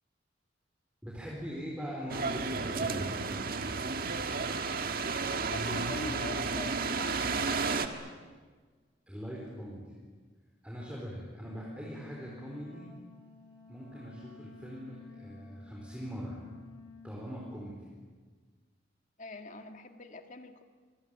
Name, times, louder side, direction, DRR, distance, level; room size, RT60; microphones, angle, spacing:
voice 1, 1.0-3.1 9.1-9.9 10.6-12.9 13.7-16.4 17.0-17.9, equal, 5° right, -3 dB, 4.3 m, -41 dB
sound 1, 2.1-7.9, right 4 dB, 55° right, 1.7 m, -32 dB
voice 2, 5.3-7.7 10.8-11.0 19.2-20.6, left 2 dB, 45° left, 6 dB, 1.8 m, -44 dB
Wind instrument woodwind instrument, 11.4-17.5, left 4 dB, 85° left, 5.8 m, -52 dB
26.0 x 22.5 x 9.1 m, 1.4 s
head